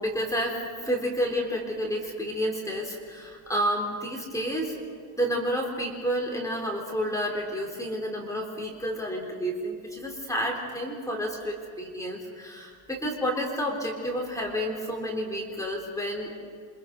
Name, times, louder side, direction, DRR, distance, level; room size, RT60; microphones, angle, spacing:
voice 1, 0.0-4.8 5.2-16.4, equal, 5° left, -1 dB, 3.7 m, -30 dB
28.5 x 25.5 x 5.2 m, 2.1 s
cardioid pair, 150°, 47 cm